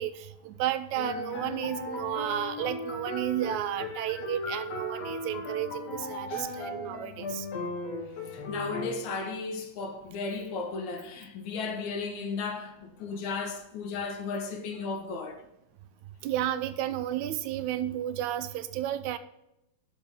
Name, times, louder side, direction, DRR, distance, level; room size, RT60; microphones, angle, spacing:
voice 1, 0.0-7.5 16.2-19.2, right 12 dB, 90° right, 2.0 m, -32 dB
sound 1, 1.0-9.1, left 2 dB, 65° left, 2.5 m, -37 dB
voice 2, 7.7-15.4, left 4 dB, 80° left, 2.5 m, -35 dB
12.0 x 6.1 x 3.6 m
omnidirectional pair, 3.4 m